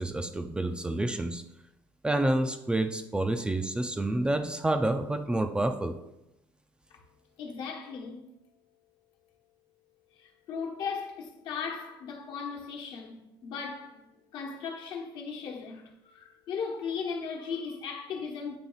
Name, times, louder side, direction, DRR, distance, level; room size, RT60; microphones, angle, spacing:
voice 1, 0.0-1.4 2.0-5.9, right 1 dB, 10° right, 0.4 m, -28 dB
voice 2, 7.4-8.2 10.2-14.0 14.3-18.6, left 5 dB, 65° left, 1.1 m, -37 dB
8.5 x 3.0 x 3.9 m
cardioid pair, 115°, 9 cm